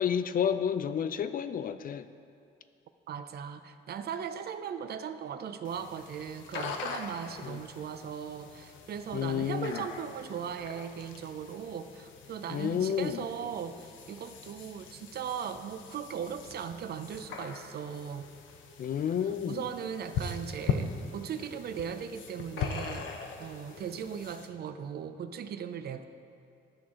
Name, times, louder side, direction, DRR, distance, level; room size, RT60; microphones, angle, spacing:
voice 1, 0.0-2.1 7.4-7.6 9.1-9.9 12.5-13.3 18.8-19.6, left 8 dB, 45° left, 11 dB, 0.4 m, -30 dB
voice 2, 3.1-18.3 19.5-23.1 23.4-26.1, right 7 dB, 55° right, 10 dB, 0.5 m, -38 dB
sound 1, 5.6-24.5, left 5 dB, 75° left, 0.7 m, -41 dB
11.5 x 6.1 x 3.7 m, 2.5 s
cardioid pair, 90°, 20 cm